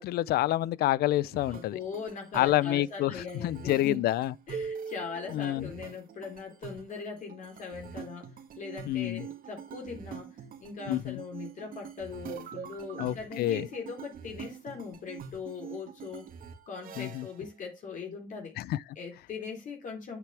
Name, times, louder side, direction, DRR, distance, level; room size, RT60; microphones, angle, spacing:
voice 1, 0.0-1.8 2.3-4.3 5.3-5.7 8.9-9.2 10.9-11.2 13.0-13.7 17.0-17.3 18.6-18.8, left 15 dB, 70° left, 0.5 m, -28 dB
sound 1, 1.3-17.4, right 7 dB, 55° right, 2.1 m, -44 dB
voice 2, 1.5-4.1 4.5-16.3 16.7-18.6 19.0-20.2, left 5 dB, 50° left, 3.6 m, -40 dB
9.1 x 8.1 x 3.4 m
cardioid pair, 110°, 17 cm